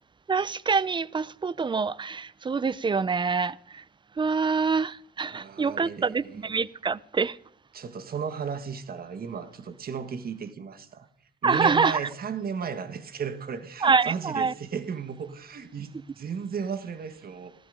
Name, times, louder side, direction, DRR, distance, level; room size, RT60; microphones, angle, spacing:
voice 1, 0.3-3.8 4.2-7.4 11.4-12.1 13.8-14.5, right 5 dB, 25° right, 0.5 m, -26 dB
voice 2, 5.3-6.5 7.7-11.1 11.4-17.5, right 6 dB, 50° right, 1.6 m, -35 dB
16.0 x 13.5 x 5.1 m
cardioid pair, 90°, 20 cm